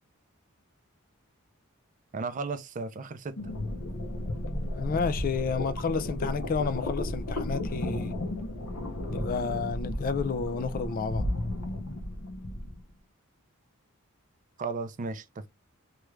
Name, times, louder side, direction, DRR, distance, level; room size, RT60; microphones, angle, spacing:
voice 1, 2.1-3.4 14.6-15.5, right 4 dB, 35° right, 0.4 m, -35 dB
sound 1, 3.4-12.8, left 1 dB, 80° left, 0.9 m, -33 dB
voice 2, 4.7-8.1 9.1-11.3, left 5 dB, 40° left, 0.3 m, -31 dB
3.2 x 2.4 x 3.1 m
head